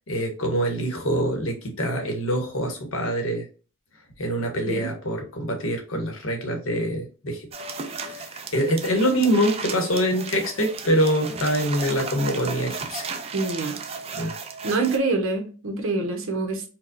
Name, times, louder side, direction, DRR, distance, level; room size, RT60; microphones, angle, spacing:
voice 1, 0.1-3.4 4.2-7.5 8.0-13.0 14.1-14.3, equal, 70° left, 3 dB, 1.1 m, -25 dB
sound 1, 7.5-15.0, right 5 dB, 30° right, 0.4 m, -35 dB
voice 2, 13.3-13.8 14.1-14.4 14.6-16.6, right 3 dB, 70° right, 2 dB, 1.0 m, -26 dB
4.6 x 2.2 x 2.6 m, 0.36 s
head